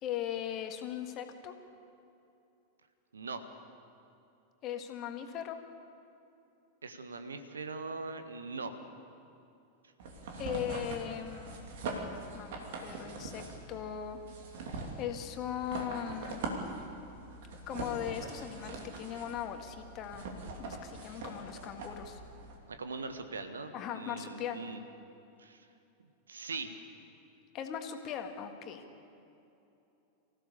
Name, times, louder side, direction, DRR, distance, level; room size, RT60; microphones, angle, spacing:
voice 1, 0.0-1.5 4.6-5.6 10.4-11.7 12.3-14.2 15.0-16.5 17.7-20.2 20.6-22.2 23.7-24.6 27.5-28.8, left 9 dB, 35° left, 5 dB, 1.9 m, -39 dB
voice 2, 3.1-3.4 6.8-8.8 22.7-24.8 25.4-25.7 26.3-26.7, right 4 dB, 70° right, 8 dB, 1.5 m, -41 dB
sound 1, 10.0-22.6, right 3 dB, 55° right, 3.0 m, -42 dB
25.0 x 15.5 x 6.9 m, 2.8 s
figure-of-eight pair, 90°, 0 cm